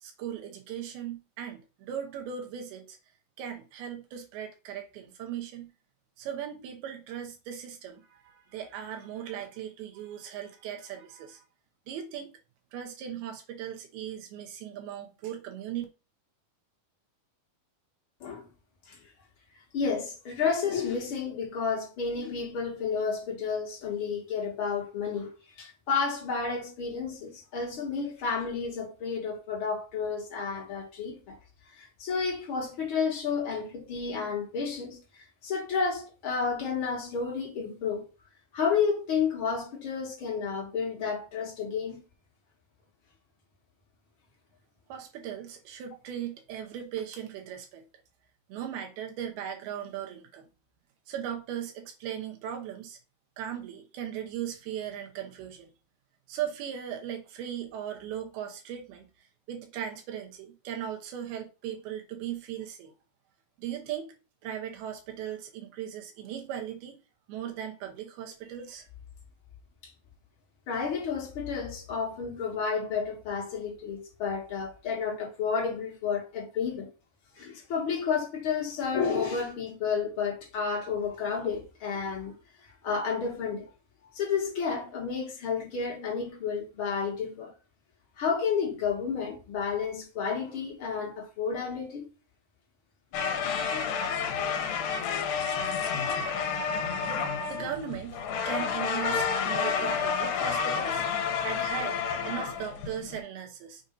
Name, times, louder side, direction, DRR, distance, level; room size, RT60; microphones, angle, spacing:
voice 1, 0.0-3.0 3.4-5.7 6.2-11.4 11.9-12.3 12.7-15.9 44.9-47.9 48.5-50.5 51.1-53.0 53.4-55.7 56.3-59.1 59.5-62.9 63.6-64.1 64.4-67.0 67.3-68.9 97.5-98.2 98.5-101.1 101.4-103.8, right 9 dB, 90° right, 2.9 m, -38 dB
voice 2, 19.7-25.3 25.6-31.4 31.8-38.1 38.5-42.0 69.8-69.9 70.7-76.9 77.4-82.3 82.6-83.7 84.1-87.5 88.2-92.1 95.3-95.4, left 5 dB, 50° left, 1.7 m, -31 dB
sound 1, 93.1-103.2, left 6 dB, 75° left, 2.6 m, -30 dB
6.9 x 2.7 x 5.1 m
omnidirectional pair, 4.3 m